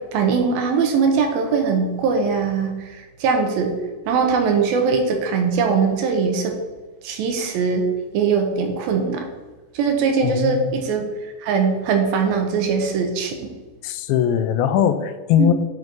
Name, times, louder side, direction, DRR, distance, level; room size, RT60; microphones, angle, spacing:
voice 1, 0.1-3.7 4.1-6.5 7.0-7.9 8.1-9.3 9.7-13.5 15.4-15.5, right 5 dB, 85° right, 4 dB, 2.7 m, -21 dB
voice 2, 10.2-10.8 13.8-15.5, left 9 dB, 85° left, 10 dB, 2.4 m, -20 dB
9.6 x 4.6 x 3.9 m, 1.3 s
omnidirectional pair, 4.2 m